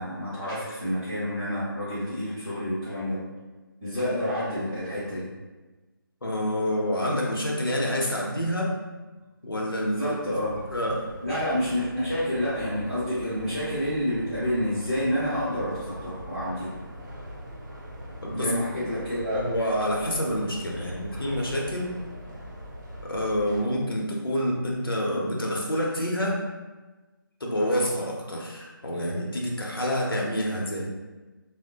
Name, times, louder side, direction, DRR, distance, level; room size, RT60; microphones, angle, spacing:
voice 1, 0.0-3.2 3.8-5.3 10.0-10.5 11.2-16.7 18.3-19.4 20.7-20.8 21.1-21.2, equal, 5° right, -18 dB, 0.4 m, -29 dB
voice 2, 6.2-8.8 9.4-10.1 10.7-11.1 18.2-18.5 18.7-18.8 19.3-21.9 23.0-26.4 27.4-30.9, equal, 75° left, -2 dB, 0.7 m, -27 dB
sound 1, 10.4-23.6, equal, 50° right, 0.6 m, -42 dB
3.0 x 2.1 x 2.7 m, 1.2 s
figure-of-eight pair, 155°, 12 cm